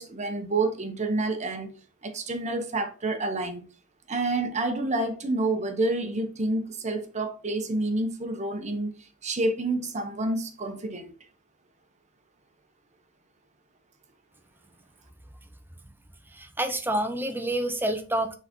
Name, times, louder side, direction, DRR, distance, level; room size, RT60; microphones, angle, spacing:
voice 1, 0.0-1.7 2.0-3.6 4.1-11.1, right 2 dB, 30° right, 1.0 m, -28 dB
voice 2, 16.3-18.3, right 1 dB, 10° right, 0.7 m, -28 dB
6.8 x 4.0 x 4.4 m
head